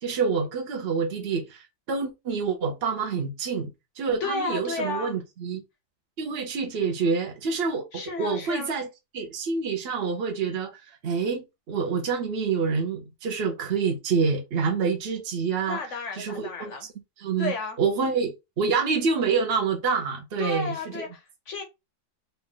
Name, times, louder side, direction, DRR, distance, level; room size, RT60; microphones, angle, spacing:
voice 1, 0.0-3.7 4.0-5.6 6.2-8.9 9.1-10.7 11.0-15.8 16.1-16.9 17.2-21.0, right 5 dB, 65° right, 0.6 m, -27 dB
voice 2, 4.2-5.2 7.9-8.7 15.7-16.9 17.4-17.8 20.4-21.6, left 4 dB, 60° left, 0.8 m, -33 dB
4.1 x 2.4 x 3.7 m
omnidirectional pair, 2.1 m